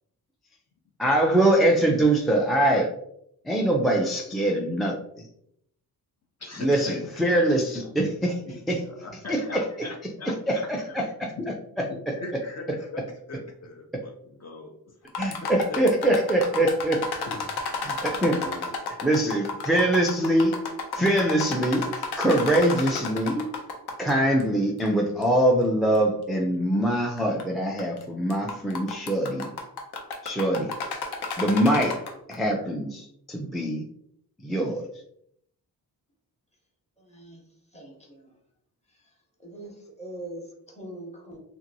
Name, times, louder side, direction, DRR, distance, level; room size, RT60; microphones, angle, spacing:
voice 1, 1.0-2.9 3.4-5.3 6.6-8.4 8.7-8.8 9.3-9.4 10.5-11.0 15.2-17.0 17.8-18.4 19.0-20.5 20.9-21.9 22.2-23.5 24.0-29.5 30.2-30.7 31.4-33.8 34.4-34.8, right 1 dB, ahead, -1 dB, 0.3 m, -23 dB
voice 2, 6.4-7.1 7.5-8.0 8.5-10.6 10.9-11.0 11.2-11.5 11.8-13.0 13.3-15.5 17.3-17.5 18.3-18.7 19.2-19.3, left 2 dB, 40° left, 1 dB, 0.6 m, -40 dB
sound 1, 15.1-24.1 24.4-24.5 25.2-25.3 25.9-26.0 27.2-27.4 27.8-28.0 28.3-32.3, left 4 dB, 80° left, 0.6 m, -32 dB
voice 3, 37.0-37.4 37.7-38.3 38.9-39.1 39.4-41.4, right 1 dB, 15° left, -1 dB, 0.8 m, -42 dB
2.8 x 2.5 x 2.6 m, 0.71 s
wide cardioid pair, 100°, 39 cm